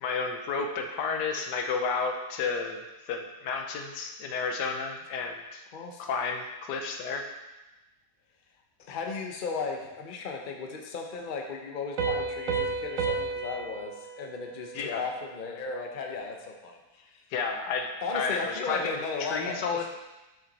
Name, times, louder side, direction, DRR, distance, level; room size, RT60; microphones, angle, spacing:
voice 1, 0.0-2.8 3.1-5.6 6.0-7.3 14.7-15.1 17.3-19.9, left 5 dB, 85° left, 4 dB, 1.4 m, -31 dB
voice 2, 5.7-6.0 8.8-17.2 18.0-19.9, left 4 dB, 45° left, 2 dB, 0.7 m, -36 dB
Piano, 12.0-15.4, right 4 dB, 55° right, 1.1 m, -32 dB
6.6 x 6.2 x 4.1 m, 1.1 s
omnidirectional pair, 1.8 m